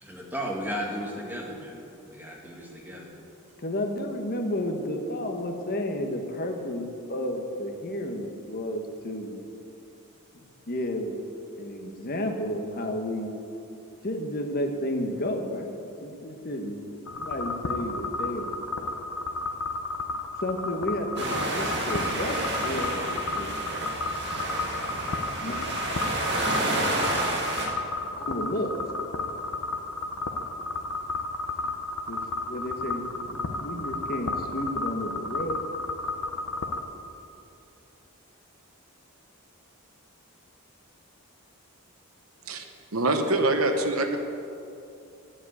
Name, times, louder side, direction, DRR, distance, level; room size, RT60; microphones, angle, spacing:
voice 1, 0.0-3.1, equal, 10° right, -2 dB, 1.9 m, -35 dB
voice 2, 3.6-9.4 10.7-11.2 11.6-13.3 14.0-16.8 17.2-18.5 20.4-23.5 25.4-26.0 26.5-27.2 28.1-28.7 32.1-32.2 32.5-35.6, left 1 dB, 45° left, 4 dB, 1.1 m, -32 dB
sound 1, 17.1-36.8, left 3 dB, 75° left, 0.8 m, -33 dB
sound 2, 21.2-27.7, right 1 dB, 50° right, 2.0 m, -29 dB
voice 3, 42.9-44.2, right 2 dB, 75° right, 6 dB, 1.0 m, -24 dB
11.0 x 7.5 x 8.3 m, 2.7 s
head